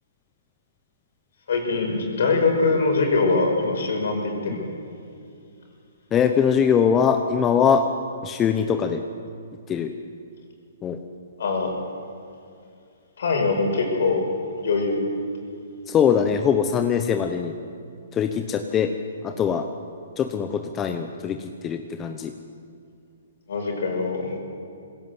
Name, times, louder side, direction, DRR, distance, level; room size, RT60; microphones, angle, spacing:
voice 1, 1.5-4.6 11.4-11.7 13.2-14.3 14.6-15.0 23.5-24.4, left 3 dB, 70° left, 3 dB, 5.7 m, -23 dB
voice 2, 6.1-7.8 8.2-9.0 9.7-9.9 10.8-11.0 15.9-17.5 18.1-18.9 19.2-19.7 20.2-22.3, left 7 dB, 20° left, 6 dB, 1.0 m, -22 dB
21.0 x 17.0 x 8.0 m, 2.5 s
hypercardioid pair, 140°, 0 cm